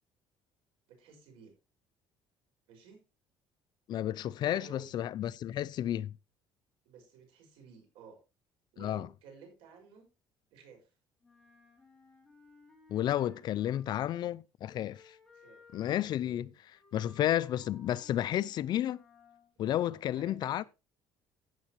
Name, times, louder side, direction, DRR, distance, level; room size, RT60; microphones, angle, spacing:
voice 1, 0.9-1.5 2.7-3.0 4.4-4.9 6.8-8.2 8.7-10.1 10.5-10.9 15.3-15.6 19.9-20.7, right 5 dB, 80° right, 5.7 m, -54 dB
voice 2, 3.9-6.1 8.8-9.1 12.9-15.2 15.7-19.0 19.6-20.6, left 12 dB, 50° left, 0.5 m, -32 dB
Wind instrument woodwind instrument, 11.2-14.1 14.7-19.5, left 3 dB, 5° left, 3.0 m, -60 dB
14.5 x 8.2 x 3.0 m
cardioid pair, 135°, 9 cm